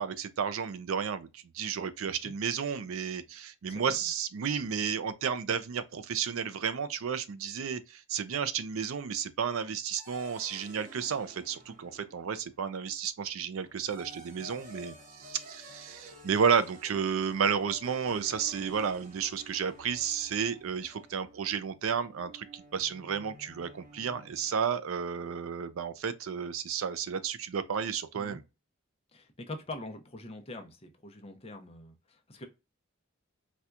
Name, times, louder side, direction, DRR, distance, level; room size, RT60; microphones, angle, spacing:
voice 1, 0.0-28.4, right 7 dB, 75° right, 0.4 m, -32 dB
sound 1, 10.0-12.5 13.6-24.7, right 1 dB, 40° right, 0.9 m, -51 dB
voice 2, 29.1-32.5, left 2 dB, 30° left, 0.6 m, -44 dB
4.2 x 2.3 x 2.4 m
head